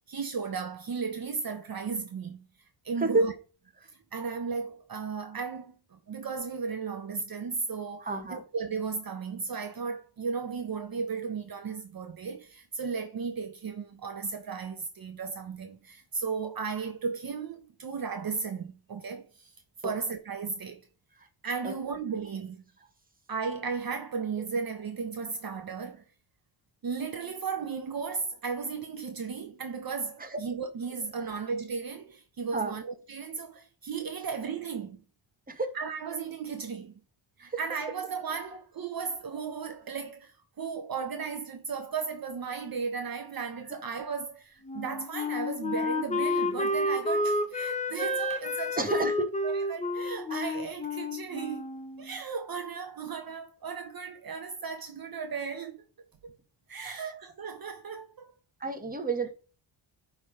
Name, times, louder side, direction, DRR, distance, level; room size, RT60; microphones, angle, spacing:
voice 1, 0.1-2.4 2.8-3.3 4.1-19.5 19.8-20.8 21.4-22.6 23.3-26.0 26.8-35.0 35.7-36.9 37.4-49.1 49.4-51.7 52.0-55.8 56.2-56.3 56.7-58.3, right 5 dB, 45° right, 1.1 m, -35 dB
voice 2, 8.0-8.4 19.8-19.9 21.6-21.7 30.2-30.4 32.5-32.7 35.5-35.7 37.4-37.6 48.8-49.3 56.8-57.1 58.6-59.3, right 2 dB, 20° right, 1.5 m, -30 dB
Wind instrument woodwind instrument, 44.7-52.2, left 1 dB, 15° left, 1.0 m, -30 dB
10.5 x 3.8 x 5.0 m
cardioid pair, 100°, 47 cm